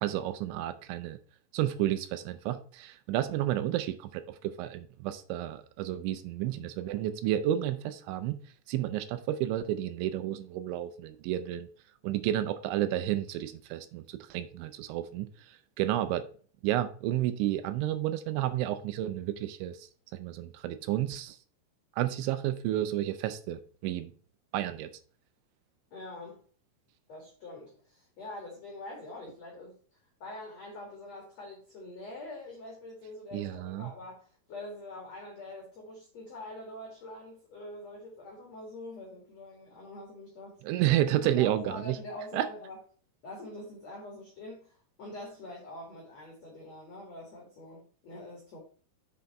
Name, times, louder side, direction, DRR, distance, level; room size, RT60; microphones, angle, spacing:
voice 1, 0.0-1.2 1.5-8.4 8.7-11.7 12.0-16.3 16.6-21.4 22.0-24.1 24.5-24.9 33.3-33.9 40.6-42.0 42.3-42.5, right 13 dB, 80° right, 11 dB, 2.9 m, -31 dB
voice 2, 25.9-26.4 27.1-40.9 41.2-42.8 43.2-48.6, left 1 dB, 50° left, -1 dB, 2.3 m, -45 dB
7.1 x 6.1 x 4.2 m, 0.43 s
omnidirectional pair, 5.6 m